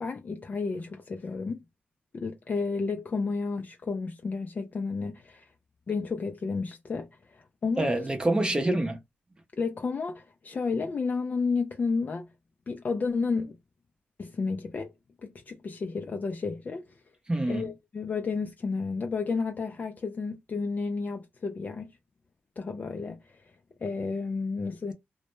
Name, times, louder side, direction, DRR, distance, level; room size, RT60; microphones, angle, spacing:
voice 1, 0.0-1.6 2.1-5.5 5.9-7.9 9.6-12.3 12.7-13.5 14.2-14.9 15.2-17.0 17.5-22.0 22.6-23.5 23.8-24.9, left 4 dB, 40° left, 0.3 m, -32 dB
voice 2, 7.8-9.0 17.3-17.7, right 1 dB, 20° right, 0.6 m, -26 dB
2.1 x 2.1 x 2.9 m
cardioid pair, 70°, 4 cm